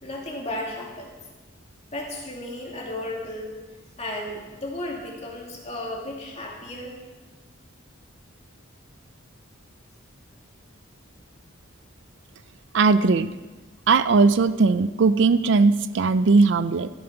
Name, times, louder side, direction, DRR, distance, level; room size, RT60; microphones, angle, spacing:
voice 1, 0.0-1.1 1.9-3.6 4.0-7.0, left 1 dB, 30° left, -2 dB, 2.5 m, -34 dB
voice 2, 12.7-13.3 13.9-16.9, right 4 dB, 60° right, 13 dB, 0.4 m, -19 dB
13.5 x 8.6 x 5.9 m, 1.2 s
head